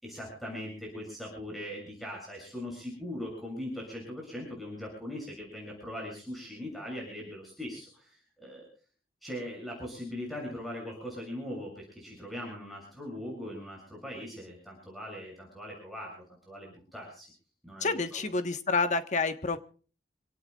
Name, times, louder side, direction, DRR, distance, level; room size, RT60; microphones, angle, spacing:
voice 1, 0.0-8.7 9.2-17.3 17.6-18.3, left 1 dB, ahead, -3 dB, 7.1 m, -40 dB
voice 2, 17.8-19.6, left 4 dB, 45° left, 9 dB, 1.5 m, -28 dB
26.5 x 18.0 x 2.5 m, 0.40 s
head